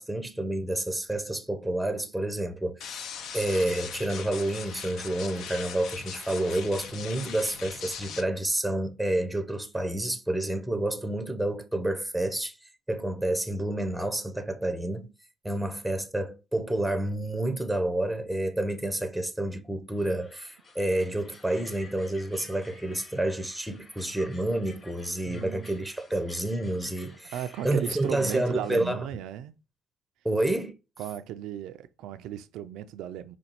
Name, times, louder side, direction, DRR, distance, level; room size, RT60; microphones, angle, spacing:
voice 1, 0.0-15.1 15.4-27.3 27.6-29.1 30.2-30.7, right 1 dB, ahead, 0.6 m, -29 dB
sound 1, 2.8-8.2, left 7 dB, 75° left, 0.6 m, -40 dB
sound 2, 20.0-28.9, left 3 dB, 35° left, 2.5 m, -52 dB
voice 2, 25.3-25.7 27.3-29.5 31.0-33.4, right 10 dB, 85° right, 0.4 m, -36 dB
5.2 x 2.3 x 4.3 m
cardioid pair, 95°, 0 cm